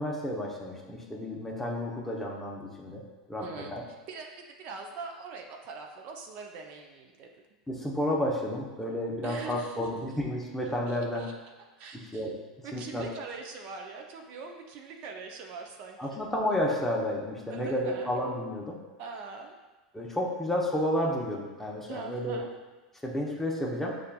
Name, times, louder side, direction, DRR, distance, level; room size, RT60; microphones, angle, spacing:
voice 1, 0.0-3.8 7.7-11.3 11.9-12.4 12.7-13.1 16.0-18.8 19.9-22.4 23.0-24.0, left 1 dB, 10° left, -2 dB, 0.8 m, -31 dB
voice 2, 3.4-3.8 4.1-7.3 9.2-9.8 10.9-11.3 11.8-12.3 12.6-16.2 17.5-18.1 19.0-19.6 21.9-22.5, right 4 dB, 55° right, 2 dB, 0.5 m, -42 dB
6.4 x 2.4 x 2.2 m, 1.2 s
hypercardioid pair, 95°, 3 cm